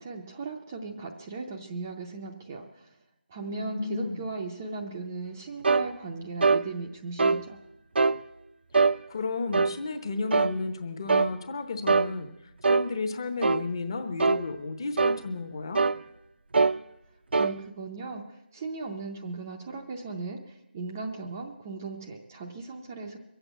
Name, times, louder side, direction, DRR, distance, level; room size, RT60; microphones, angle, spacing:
voice 1, 0.0-3.0 3.3-7.6 17.4-23.2, right 3 dB, 15° right, 1 dB, 0.5 m, -37 dB
voice 2, 3.5-4.3 8.8-12.3 12.6-15.8, left 3 dB, 25° left, 7 dB, 0.9 m, -33 dB
sound 1, 5.6-5.9 6.4-6.6 7.2-7.4 7.9-8.2 8.7-9.0 9.5-9.8 10.3-10.5 11.1-11.3 11.9-12.1 12.6-12.9 13.4-13.6 14.2-14.4 15.0-15.2 15.7-16.0 16.5-16.8 17.3-17.5, right 4 dB, 80° right, 0.6 m, -22 dB
22.0 x 8.0 x 7.9 m, 0.91 s
figure-of-eight pair, 175°, 6 cm